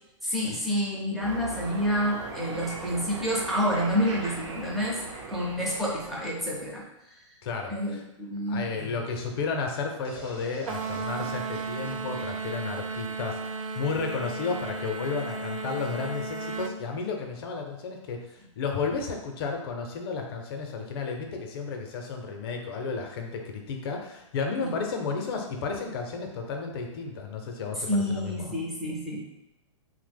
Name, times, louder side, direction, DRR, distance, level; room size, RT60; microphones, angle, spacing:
voice 1, 0.2-5.0 5.3-6.8 7.7-8.9 24.6-24.7 27.9-29.2, equal, ahead, -6 dB, 0.5 m, -28 dB
sound 1, 1.2-6.8, right 2 dB, 60° right, 0.9 m, -39 dB
voice 2, 7.4-8.0 8.5-28.5, left 5 dB, 50° left, 3 dB, 0.5 m, -33 dB
sound 2, 10.0-13.8, right 1 dB, 30° right, 0.8 m, -47 dB
sound 3, 10.7-16.8, right 4 dB, 80° right, 0.4 m, -34 dB
2.8 x 2.0 x 3.4 m, 0.92 s
hypercardioid pair, 145°, 17 cm